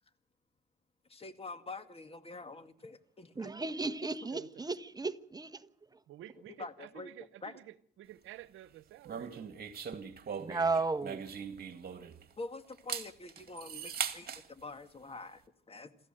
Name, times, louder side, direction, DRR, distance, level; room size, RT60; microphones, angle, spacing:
voice 1, 1.1-3.7 6.6-7.1 7.4-7.6 12.3-15.9, left 3 dB, 30° left, 2.1 m, -46 dB
voice 2, 3.4-5.7 10.4-11.2, right 3 dB, 20° right, 1.2 m, -34 dB
voice 3, 6.1-9.5, right 14 dB, 90° right, 1.0 m, -51 dB
sound 1, 9.1-12.3 12.7-14.4, right 7 dB, 50° right, 2.4 m, -40 dB
27.5 x 14.0 x 7.7 m
cardioid pair, 90°, 20 cm